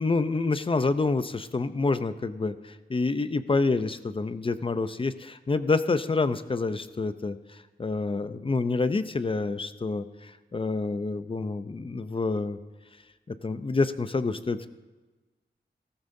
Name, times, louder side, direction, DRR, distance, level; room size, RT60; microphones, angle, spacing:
voice 1, 0.0-12.6 13.3-14.7, left 3 dB, 30° left, 12 dB, 0.6 m, -28 dB
17.0 x 14.5 x 2.7 m, 1.3 s
wide cardioid pair, 110°, 19 cm